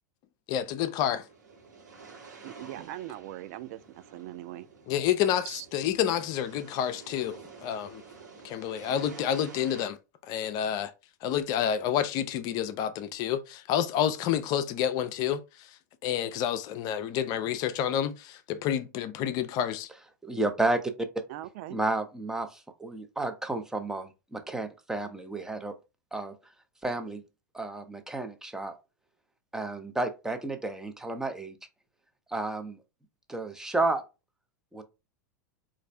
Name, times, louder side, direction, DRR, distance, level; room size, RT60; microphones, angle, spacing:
voice 1, 0.5-1.3 4.9-8.0 8.4-10.0 10.2-10.9 11.2-19.9, left 10 dB, 45° left, 0.5 m, -29 dB
sound 1, 0.9-9.9, right 4 dB, 80° right, 1.4 m, -50 dB
voice 2, 2.4-4.7 5.4-5.7 21.3-21.8, right 14 dB, 50° right, 0.4 m, -41 dB
voice 3, 20.2-20.9 21.7-25.7 26.1-26.3 26.8-27.2 27.5-28.7 29.5-31.6 32.3-32.8 33.3-34.0 34.7-34.8, right 2 dB, 5° right, 0.7 m, -31 dB
4.1 x 2.5 x 3.2 m
figure-of-eight pair, 90°, 10 cm